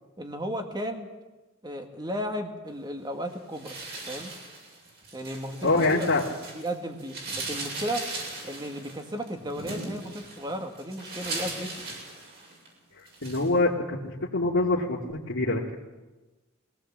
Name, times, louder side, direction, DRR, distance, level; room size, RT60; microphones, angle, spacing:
voice 1, 0.2-1.1 1.6-3.8 4.0-4.3 5.1-6.1 6.5-8.1 8.4-11.8, equal, 20° right, 4 dB, 2.0 m, -34 dB
sound 1, 3.5-6.7 7.0-12.7 13.1-13.5, right 2 dB, 50° right, 7.6 m, -38 dB
voice 2, 5.6-6.2 13.0-15.7, left 2 dB, 80° left, -6 dB, 2.4 m, -25 dB
21.5 x 18.5 x 7.5 m, 1.2 s
head